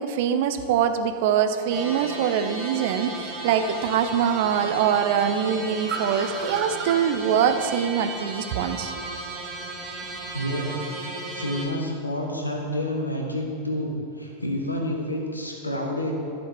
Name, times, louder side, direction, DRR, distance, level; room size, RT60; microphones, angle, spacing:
voice 1, 0.0-8.9, right 8 dB, 50° right, 8 dB, 0.6 m, -23 dB
sound 1, 1.7-11.7, right 2 dB, 15° right, 2.6 m, -35 dB
Car, 3.1-10.5, right 5 dB, 35° right, 1.0 m, -41 dB
voice 2, 10.3-16.1, left 1 dB, 85° left, 1 dB, 1.4 m, -29 dB
11.5 x 7.3 x 4.6 m, 2.7 s
figure-of-eight pair, 90°, 0 cm